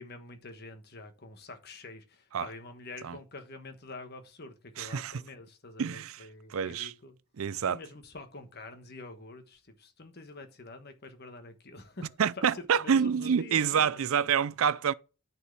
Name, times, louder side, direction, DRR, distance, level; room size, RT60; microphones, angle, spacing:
voice 1, 0.0-7.2 7.7-14.0, left 2 dB, 45° left, 1.3 m, -46 dB
voice 2, 4.8-5.1 5.8-6.3 6.5-6.9 7.4-7.8 12.2-14.9, right 7 dB, 70° right, 0.4 m, -27 dB
10.0 x 4.5 x 6.5 m
head